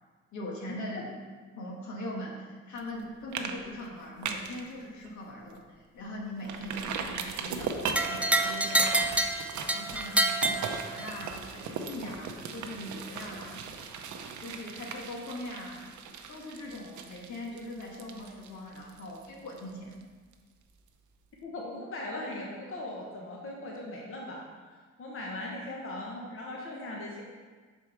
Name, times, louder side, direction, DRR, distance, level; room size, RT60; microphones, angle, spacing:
voice 1, 0.3-1.1 1.6-9.2 9.6-13.6 14.4-15.9 16.3-20.0, left 1 dB, 70° left, -2 dB, 1.5 m, -41 dB
sound 1, 2.8-3.0 3.3-3.5 3.8-4.6 5.0-5.1 5.5-5.6 6.4-20.0 20.3-20.4, right 6 dB, 70° right, 0.7 m, -38 dB
sound 2, 7.9-11.3, right 1 dB, 5° right, 0.4 m, -27 dB
voice 2, 21.4-24.4 25.0-27.2, left 1 dB, 45° left, -2 dB, 1.3 m, -39 dB
6.0 x 4.9 x 4.4 m, 1.5 s
cardioid pair, 90°, 30 cm